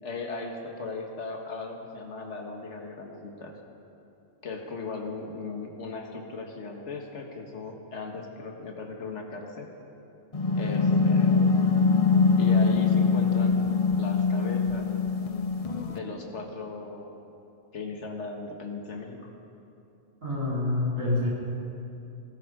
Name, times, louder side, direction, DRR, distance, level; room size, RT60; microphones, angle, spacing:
voice 1, 0.0-3.6 4.4-9.7 10.6-11.7 12.4-13.6 13.9-14.9 15.9-17.2 17.7-19.3, left 3 dB, 60° left, 2 dB, 1.8 m, -37 dB
sound 1, 10.3-16.0, left 4 dB, 35° left, 0.6 m, -23 dB
voice 2, 20.2-21.3, left 2 dB, 75° right, -7 dB, 4.7 m, -27 dB
19.0 x 13.0 x 5.1 m, 2.8 s
omnidirectional pair, 1.4 m